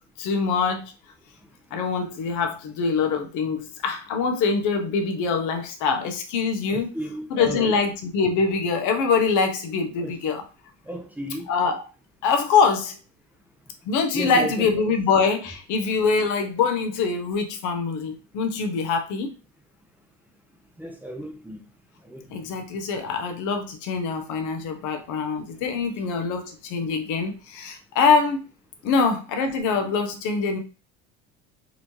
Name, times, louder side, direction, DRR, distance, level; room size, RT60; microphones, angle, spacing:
voice 1, 0.2-0.9 1.7-6.9 7.3-10.4 11.5-11.8 12.2-13.0 13.8-19.3 22.3-28.4 28.8-30.6, left 5 dB, 60° left, 1.0 m, -24 dB
voice 2, 6.7-7.7 10.0-10.1 10.9-11.5 14.1-14.7 20.8-21.6 22.1-22.2, equal, 5° right, 0.6 m, -33 dB
4.1 x 2.8 x 3.1 m
cardioid pair, 125°, 33 cm